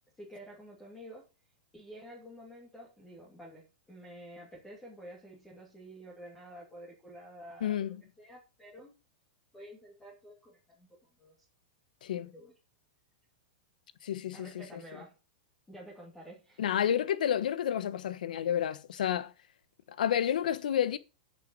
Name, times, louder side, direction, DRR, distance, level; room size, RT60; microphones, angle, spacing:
voice 1, 0.2-1.2 1.7-9.0 9.5-10.9 11.2-11.3 12.1-12.5 14.3-15.2 15.7-16.6, equal, 5° left, 2.5 m, -50 dB
voice 2, 7.6-8.0 12.0-12.3 14.0-14.5 16.6-19.3 20.0-21.0, left 10 dB, 80° left, 1.2 m, -30 dB
9.1 x 6.7 x 7.8 m
supercardioid pair, 175°, 4 cm